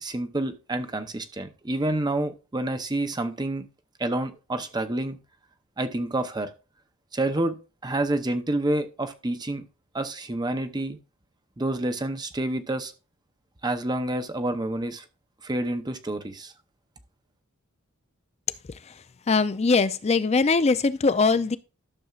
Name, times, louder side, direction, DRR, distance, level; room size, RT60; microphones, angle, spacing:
voice 1, 0.0-3.6 4.0-5.2 5.8-6.5 7.1-7.6 7.8-9.6 9.9-11.0 11.6-12.9 13.6-15.0 15.4-16.5, right 1 dB, 20° right, 0.7 m, -28 dB
voice 2, 19.3-21.6, left 4 dB, 30° left, 0.4 m, -21 dB
12.0 x 6.9 x 2.4 m
head